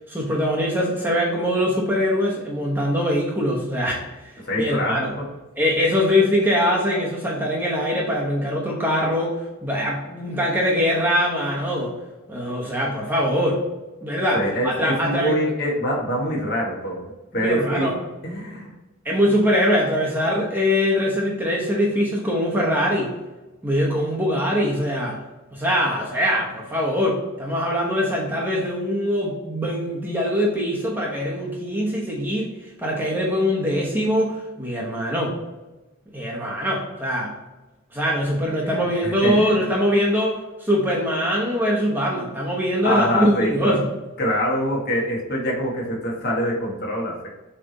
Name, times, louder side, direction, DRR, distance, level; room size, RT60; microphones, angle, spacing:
voice 1, 0.1-4.0 4.6-5.1 5.6-11.9 12.3-13.6 14.0-15.3 17.3-17.9 19.0-23.1 23.6-25.2 25.5-32.5 32.8-35.3 36.1-37.3 37.9-43.9, equal, 10° right, -3 dB, 1.1 m, -22 dB
voice 2, 4.4-5.3 14.3-17.9 18.2-18.7 38.6-39.6 42.8-43.7 44.2-47.3, equal, 45° left, -2 dB, 1.6 m, -25 dB
7.3 x 3.4 x 3.9 m, 1.1 s
head